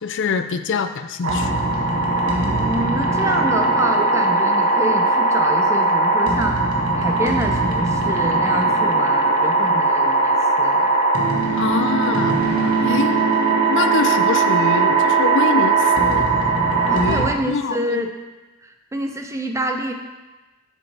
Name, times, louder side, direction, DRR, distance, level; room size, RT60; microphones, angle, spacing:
voice 1, 0.0-1.6 11.6-12.4 12.8-13.2 13.7-16.3 16.9-18.0, left 5 dB, 60° left, 9 dB, 0.4 m, -24 dB
sound 1, 1.2-17.3, right 3 dB, 90° right, 1.4 m, -19 dB
voice 2, 2.3-6.6 6.9-10.9 12.3-12.7 16.9-18.1 18.6-19.9, right 1 dB, 15° right, 4 dB, 0.6 m, -27 dB
8.1 x 6.3 x 3.3 m, 1.2 s
head